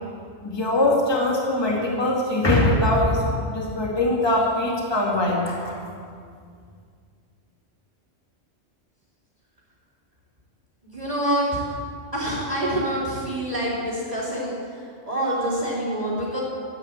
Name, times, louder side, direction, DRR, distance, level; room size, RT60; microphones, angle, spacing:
voice 1, 0.4-5.8, left 1 dB, 20° left, -3 dB, 2.3 m, -22 dB
voice 2, 10.8-11.8 12.1-16.4, right 1 dB, 35° right, -11 dB, 3.8 m, -26 dB
14.0 x 9.7 x 8.7 m, 2.2 s
omnidirectional pair, 1.2 m